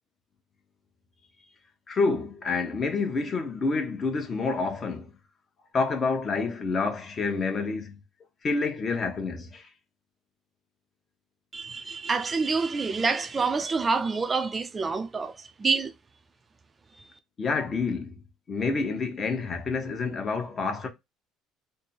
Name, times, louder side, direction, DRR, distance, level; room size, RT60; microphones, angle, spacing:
voice 1, 1.9-5.1 5.7-8.0 8.4-9.7 17.4-18.2 18.5-20.9, left 4 dB, 35° left, 1.0 m, -28 dB
voice 2, 11.5-15.9, right 4 dB, 25° right, 0.6 m, -27 dB
3.4 x 2.2 x 4.1 m
supercardioid pair, 100°, 0 cm